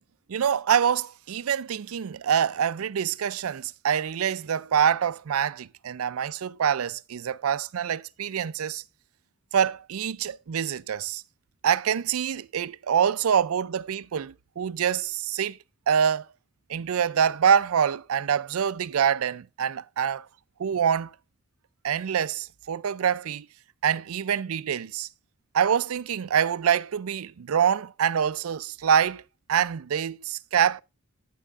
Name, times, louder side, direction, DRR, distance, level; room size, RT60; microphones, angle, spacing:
voice 1, 0.3-8.8 9.5-11.2 11.6-15.6 15.9-16.3 16.7-20.3 20.6-21.1 21.8-23.4 23.8-25.1 25.5-29.2 29.5-30.8, right 8 dB, 85° right, 0.4 m, -25 dB
10.0 x 9.3 x 2.5 m
head